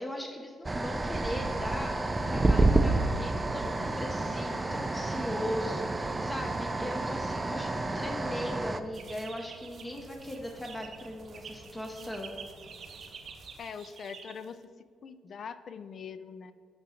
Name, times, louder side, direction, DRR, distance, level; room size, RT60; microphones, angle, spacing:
voice 1, 0.0-12.4, equal, 15° left, 1 dB, 0.7 m, -39 dB
sound 1, 0.6-8.8, right 2 dB, 20° right, 0.4 m, -29 dB
sound 2, 3.6-13.6, right 2 dB, 85° right, 1.1 m, -50 dB
sound 3, 8.9-14.6, right 5 dB, 55° right, 0.7 m, -49 dB
voice 2, 13.6-14.7 15.0-16.5, left 6 dB, 55° left, 13 dB, 0.3 m, -43 dB
8.6 x 3.8 x 4.3 m, 2.2 s
cardioid pair, 90°, 0 cm